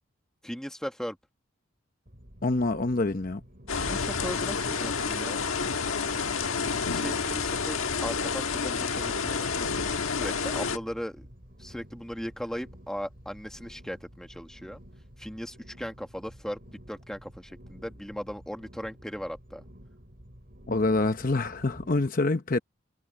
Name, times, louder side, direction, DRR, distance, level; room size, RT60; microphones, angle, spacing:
voice 1, 0.4-1.2 3.8-5.5 6.9-9.6 10.1-11.3 11.6-14.8 15.2-19.6, equal, 5° left, 1.7 m, -38 dB
sound 1, 2.1-22.1, equal, 45° right, 3.7 m, -51 dB
voice 2, 2.4-3.4 20.7-22.6, left 2 dB, 40° left, 0.8 m, -26 dB
sound 2, 3.7-10.8, left 5 dB, 85° left, 1.5 m, -29 dB
sound 3, 4.8-8.4, right 1 dB, 60° right, 4.5 m, -52 dB
head